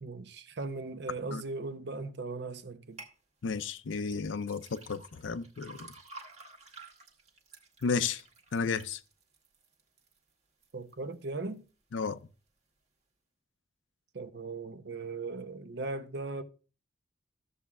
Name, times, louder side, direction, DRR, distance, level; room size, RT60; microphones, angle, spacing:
voice 1, 0.0-3.0 10.7-11.6 14.1-16.4, right 3 dB, 60° right, 0.7 m, -38 dB
sound 1, 3.0-3.2 4.0-10.2 10.6-11.1 11.6-11.7, right 3 dB, 35° right, 1.4 m, -51 dB
voice 2, 3.4-5.9 7.8-8.2 8.5-9.0 11.9-12.2, left 5 dB, 85° left, 0.5 m, -33 dB
14.0 x 7.2 x 2.4 m
head